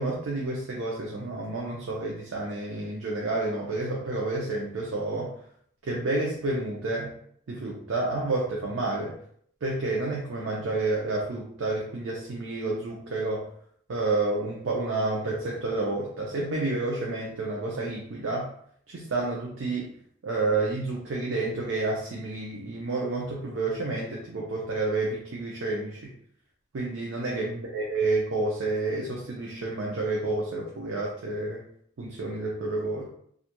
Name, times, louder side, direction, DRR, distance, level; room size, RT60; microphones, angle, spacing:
voice 1, 0.0-5.3 5.8-7.1 7.5-9.1 9.6-13.5 13.9-18.5 18.9-19.9 20.2-26.1 26.7-31.6 32.0-33.1, right 2 dB, 80° right, -3 dB, 0.5 m, -30 dB
2.4 x 2.1 x 2.8 m, 0.64 s
head